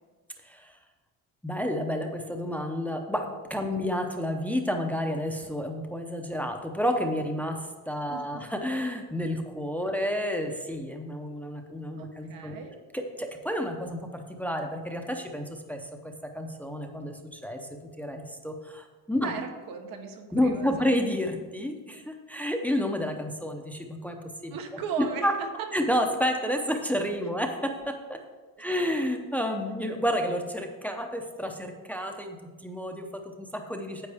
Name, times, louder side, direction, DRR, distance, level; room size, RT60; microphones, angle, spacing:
voice 1, 1.4-7.6 7.9-12.6 12.9-17.6 18.0-19.3 20.3-24.2 24.4-24.6 25.2-25.3 25.7-28.2 28.6-32.4 32.6-34.1, equal, 5° left, 3 dB, 0.7 m, -30 dB
voice 2, 8.1-8.5 12.0-12.8 19.2-20.9 24.5-25.7, right 7 dB, 70° right, 4 dB, 1.2 m, -37 dB
9.7 x 7.5 x 3.5 m, 1.3 s
cardioid pair, 125°, 35 cm